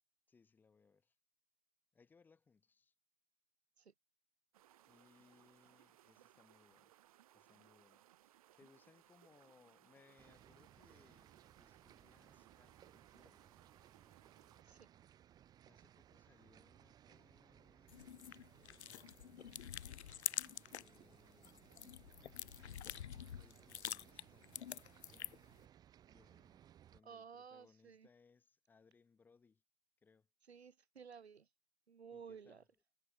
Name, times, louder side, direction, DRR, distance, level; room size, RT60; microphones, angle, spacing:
voice 1, 0.3-1.2 1.9-2.9 4.9-6.9 7.3-13.5 15.7-19.6 20.7-22.2 23.4-24.6 26.1-26.6 26.9-29.6 30.0-30.3 32.1-32.6, left 5 dB, 5° left, 2.0 m, -70 dB
sound 1, 4.5-14.6, right 13 dB, 30° right, 1.6 m, -67 dB
sound 2, 10.2-27.0, right 10 dB, 10° right, 2.6 m, -64 dB
sound 3, 17.9-21.0 21.3-25.5, left 9 dB, 70° left, 0.5 m, -46 dB
voice 2, 27.0-28.1 30.5-31.5 31.9-32.6, right 6 dB, 65° right, 2.3 m, -55 dB
figure-of-eight pair, 145°, 34 cm